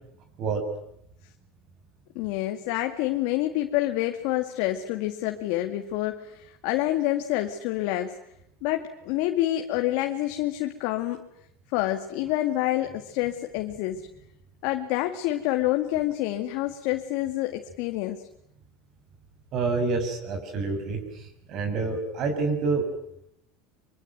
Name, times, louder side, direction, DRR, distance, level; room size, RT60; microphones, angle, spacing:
voice 1, 2.2-8.2 8.6-11.3 11.7-14.1 14.6-18.2, left 15 dB, 70° left, 5 dB, 2.1 m, -27 dB
voice 2, 19.5-22.8, right 4 dB, 50° right, 5 dB, 6.9 m, -28 dB
24.5 x 24.0 x 9.4 m, 0.76 s
supercardioid pair, 105°, 0 cm